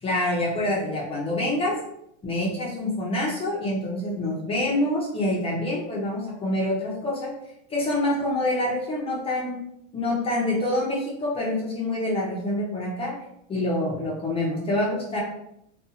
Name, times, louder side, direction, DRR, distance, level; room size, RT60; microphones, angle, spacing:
voice 1, 0.0-1.8 2.2-7.3 7.7-9.6 9.9-13.1 13.5-15.2, left 1 dB, 15° left, -4 dB, 0.5 m, -26 dB
2.5 x 2.3 x 2.7 m, 0.78 s
supercardioid pair, 135°, 38 cm